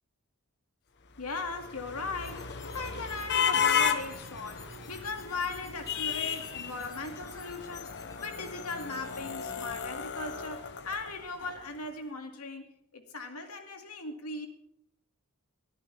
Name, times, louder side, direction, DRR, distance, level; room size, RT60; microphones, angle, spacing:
voice 1, 1.2-12.7 12.9-14.5, left 3 dB, 80° left, 2.4 m, -38 dB
sound 1, 1.2-11.5, left 7 dB, 50° left, 1.0 m, -34 dB
sound 2, 2.2-9.7, left 3 dB, 15° left, 1.4 m, -52 dB
22.5 x 15.0 x 3.5 m
head